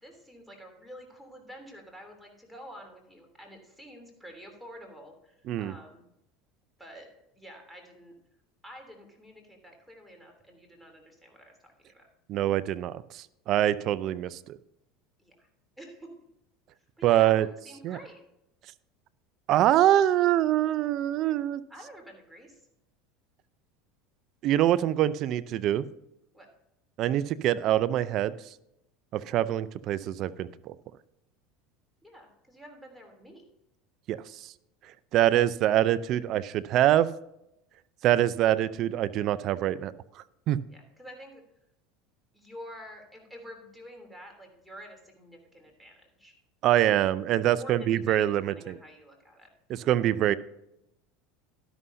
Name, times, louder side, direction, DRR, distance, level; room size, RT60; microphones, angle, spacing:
voice 1, 0.0-6.0 6.8-7.1 7.3-8.2 8.6-12.1 15.2-15.5 15.8-16.1 16.8-18.2 21.7-22.7 26.3-26.5 32.0-33.4 40.7-41.4 42.3-46.3 47.6-49.5, equal, 5° right, 2 dB, 3.1 m, -48 dB
voice 2, 12.3-14.6 17.0-17.5 17.8-18.0 19.5-21.6 24.4-25.9 27.0-28.3 29.1-30.7 34.1-34.5 35.1-37.1 38.0-39.9 40.5-40.6 46.6-48.8 49.7-50.3, right 12 dB, 55° right, 16 dB, 0.5 m, -24 dB
12.5 x 11.0 x 2.7 m, 0.83 s
supercardioid pair, 100°, 0 cm